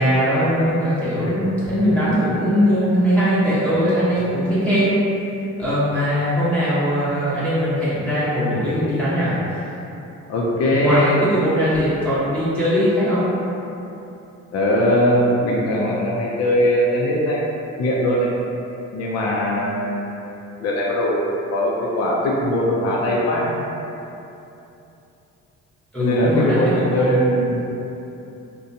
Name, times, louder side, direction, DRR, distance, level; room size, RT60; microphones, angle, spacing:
voice 1, 0.0-5.0 5.6-9.6 10.8-13.3 25.9-27.6, equal, 5° left, -12 dB, 0.7 m, -20 dB
voice 2, 10.3-11.3 14.5-17.4 17.8-18.3 18.9-20.2 20.6-23.6 26.0-27.3, equal, 55° left, -4 dB, 0.4 m, -20 dB
2.7 x 2.2 x 2.6 m, 2.8 s
cardioid pair, 90°, 30 cm